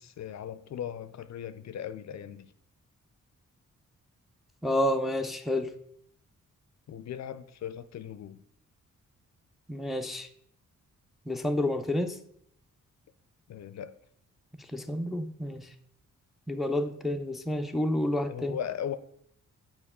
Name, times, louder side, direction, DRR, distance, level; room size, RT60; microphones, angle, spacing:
voice 1, 0.0-2.5 6.9-8.4 13.5-13.9 18.2-19.0, left 9 dB, 60° left, 0.4 m, -38 dB
voice 2, 4.6-5.7 9.7-10.3 11.3-12.2 14.7-15.7 16.5-18.6, left 1 dB, ahead, 0.4 m, -29 dB
6.9 x 4.5 x 3.6 m
cardioid pair, 90°, 31 cm